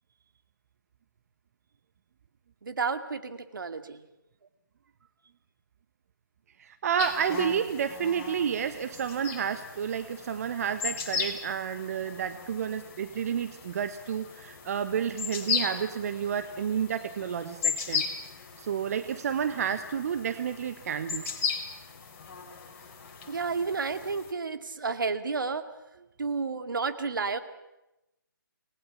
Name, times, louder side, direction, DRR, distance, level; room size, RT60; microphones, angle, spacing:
voice 1, 2.6-4.0 23.3-25.7 26.2-27.4, right 4 dB, 70° right, 8 dB, 2.3 m, -31 dB
voice 2, 6.6-18.0 18.6-21.2, right 8 dB, 45° right, 10 dB, 1.3 m, -30 dB
sound 1, 7.0-24.3, left 5 dB, 40° left, 4.1 m, -37 dB
28.5 x 20.0 x 7.2 m, 0.92 s
figure-of-eight pair, 145°, 11 cm